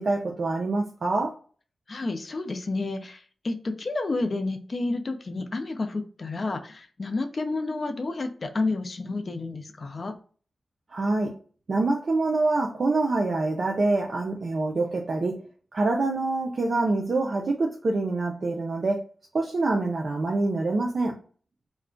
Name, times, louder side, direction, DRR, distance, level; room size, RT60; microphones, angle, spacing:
voice 1, 0.0-1.3 10.9-11.3 11.7-15.4 15.7-19.0 19.3-21.2, right 2 dB, 45° right, 0 dB, 0.4 m, -25 dB
voice 2, 1.9-10.1, left 3 dB, 40° left, 6 dB, 0.4 m, -30 dB
2.3 x 2.1 x 3.6 m, 0.40 s
wide cardioid pair, 145°, 0 cm